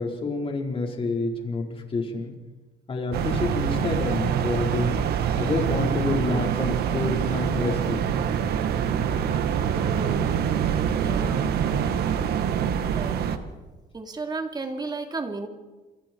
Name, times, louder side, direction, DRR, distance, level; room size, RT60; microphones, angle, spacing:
voice 1, 0.0-2.3 2.9-5.0 5.4-8.1, left 3 dB, 30° left, 1 dB, 4.7 m, -28 dB
sound 1, 3.1-13.4, right 8 dB, 70° right, 1.8 m, -25 dB
voice 2, 9.7-10.3 11.0-11.4 12.9-13.2 13.9-15.5, right 3 dB, 25° right, 5 dB, 2.8 m, -33 dB
28.5 x 23.5 x 4.7 m, 1.2 s
cardioid pair, 110°, 17 cm